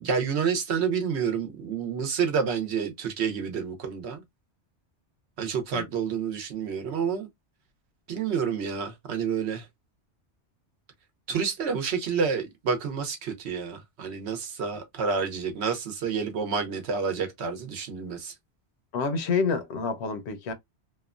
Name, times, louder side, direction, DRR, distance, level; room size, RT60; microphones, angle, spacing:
voice 1, 0.0-4.2 5.4-7.3 8.1-9.7 11.3-18.3, right 6 dB, 70° right, 1.0 m, -29 dB
voice 2, 18.9-20.5, left 5 dB, 75° left, 0.9 m, -28 dB
2.9 x 2.1 x 2.4 m
omnidirectional pair, 1.2 m